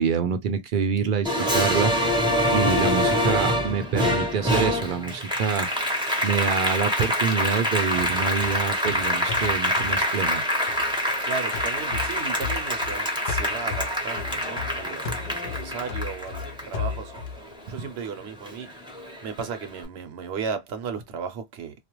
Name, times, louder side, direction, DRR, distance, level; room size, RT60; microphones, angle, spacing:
voice 1, 0.0-1.3 1.5-2.1 2.5-5.9 6.2-10.4, right 6 dB, 60° right, 0.6 m, -26 dB
Applause, 1.2-18.1 18.5-19.6, equal, 5° right, 0.5 m, -26 dB
sound 1, 7.9-11.2 11.5-13.0 13.3-17.4, left 6 dB, 70° left, 0.8 m, -35 dB
voice 2, 11.2-17.1 17.7-18.7 19.2-21.8, right 6 dB, 75° right, 0.9 m, -35 dB
2.4 x 2.1 x 2.9 m
omnidirectional pair, 1.1 m